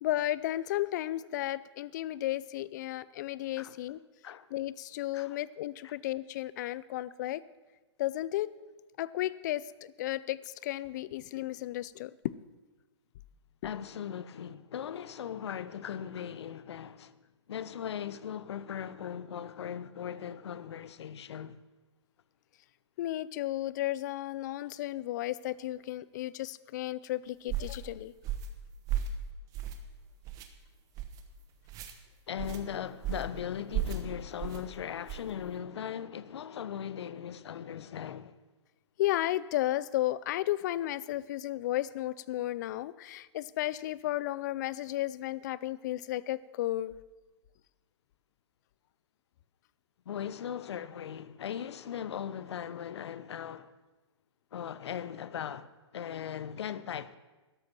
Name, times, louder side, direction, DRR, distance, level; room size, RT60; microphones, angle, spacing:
voice 1, 0.0-4.0 4.5-7.4 8.0-8.5 9.0-12.3 23.0-28.1 39.0-47.0, left 15 dB, 40° left, 0.5 m, -33 dB
voice 2, 13.6-17.2 17.5-21.6 32.3-38.4 50.1-53.7 54.5-57.2, left 9 dB, 65° left, 0.8 m, -39 dB
sound 1, 27.5-27.8 28.2-28.6 28.9-29.2 29.5-29.9 30.2-30.5 30.9-31.2 31.7-31.9 32.4-32.6 33.0-33.3 33.7-34.0 34.4-34.6 35.1-35.3, right 9 dB, 25° right, 1.1 m, -34 dB
13.0 x 10.5 x 6.1 m
hypercardioid pair, 145°, 15 cm